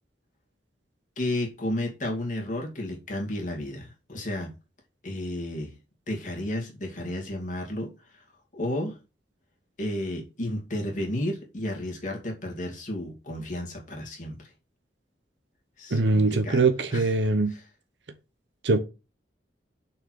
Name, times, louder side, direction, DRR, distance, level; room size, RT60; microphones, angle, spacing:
voice 1, 1.2-4.5 5.0-5.7 6.1-7.9 8.5-9.0 9.8-14.4 15.8-16.7 16.9-17.1 17.5-17.6, left 1 dB, 45° left, 2.4 m, -32 dB
voice 2, 15.9-17.5 18.6-18.8, right 3 dB, 80° right, 1.0 m, -22 dB
6.4 x 4.6 x 6.4 m
head